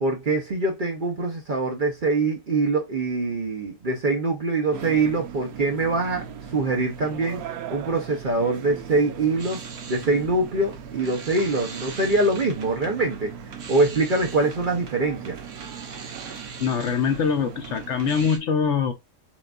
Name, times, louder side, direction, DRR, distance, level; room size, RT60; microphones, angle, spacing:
voice 1, 0.0-7.4 7.7-9.6 9.9-13.4 13.7-15.4, right 3 dB, 45° right, 0.7 m, -24 dB
sound 1, 4.7-18.3, right 7 dB, 85° right, 1.1 m, -39 dB
sound 2, 9.2-18.4, right 5 dB, 65° right, 1.2 m, -42 dB
voice 2, 16.6-18.9, left 6 dB, 65° left, 0.9 m, -23 dB
5.9 x 2.4 x 2.3 m
omnidirectional pair, 1.5 m